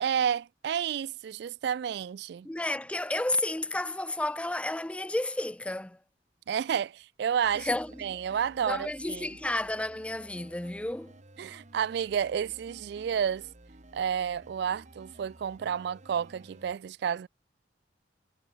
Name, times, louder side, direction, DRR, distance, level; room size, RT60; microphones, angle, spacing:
voice 1, 0.0-2.5 6.5-7.7 8.0-9.3 11.4-13.5 13.9-17.3, right 8 dB, 60° right, 0.3 m, -30 dB
voice 2, 2.4-6.0 7.5-8.2 8.6-11.1, left 1 dB, 5° left, 0.4 m, -32 dB
sound 1, 7.4-16.7, right 1 dB, 40° right, 1.4 m, -53 dB
head